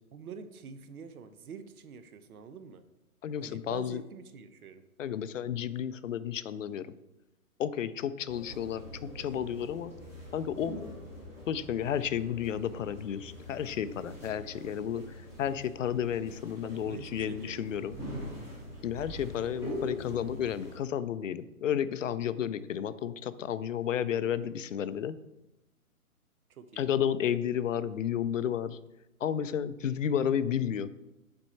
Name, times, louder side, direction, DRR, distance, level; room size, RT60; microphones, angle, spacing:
voice 1, 0.1-2.8 3.4-4.8 14.9-15.0 16.6-17.7 26.5-26.9, right 6 dB, 75° right, 11 dB, 0.9 m, -47 dB
voice 2, 3.2-4.0 5.0-6.9 7.6-9.9 10.3-10.8 11.5-15.0 15.4-17.9 18.8-25.2 26.8-28.8 29.2-30.9, left 9 dB, 60° left, 15 dB, 0.5 m, -32 dB
sound 1, 8.3-20.8, left 1 dB, 5° right, 0.8 m, -43 dB
7.7 x 4.4 x 4.3 m, 0.96 s
hypercardioid pair, 150°, 45 cm